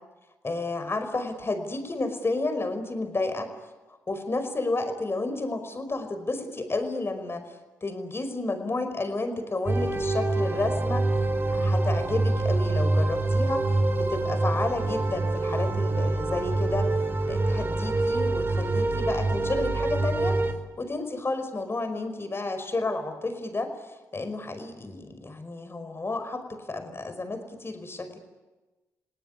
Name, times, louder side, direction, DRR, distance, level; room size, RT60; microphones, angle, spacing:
voice 1, 0.4-3.5 4.1-11.1 11.5-16.9 17.3-20.4 20.8-28.2, left 2 dB, 35° left, 9 dB, 5.2 m, -31 dB
sound 1, 9.7-20.5, right 2 dB, 30° right, 4.0 m, -25 dB
29.0 x 18.0 x 9.9 m, 1.2 s
hypercardioid pair, 45°, 7 cm